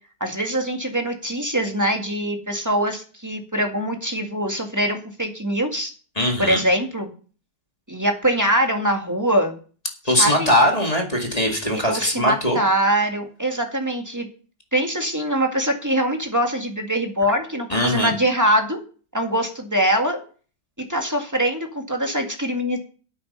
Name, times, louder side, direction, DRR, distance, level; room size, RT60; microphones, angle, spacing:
voice 1, 0.2-5.9 6.4-7.1 7.9-9.6 10.2-10.5 11.9-14.3 14.7-18.8 19.1-20.2 20.9-22.8, right 1 dB, 10° right, 3 dB, 1.8 m, -23 dB
voice 2, 6.2-6.6 10.0-12.6 17.7-18.1, left 1 dB, 20° left, 1 dB, 2.0 m, -20 dB
10.5 x 8.6 x 5.5 m, 0.39 s
omnidirectional pair, 2.3 m